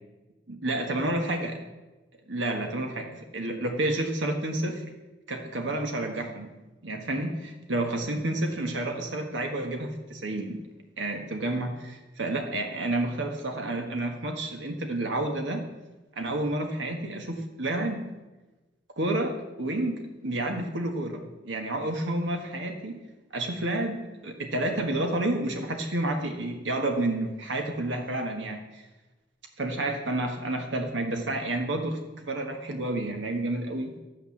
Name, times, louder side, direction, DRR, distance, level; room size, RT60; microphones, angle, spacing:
voice 1, 0.5-1.6 2.3-4.8 5.3-6.6 6.8-10.6 11.0-15.7 16.1-18.1 19.0-23.0 23.3-28.8 29.6-33.9, right 1 dB, 90° right, 4 dB, 1.5 m, -30 dB
12.0 x 9.3 x 7.2 m, 1.1 s
head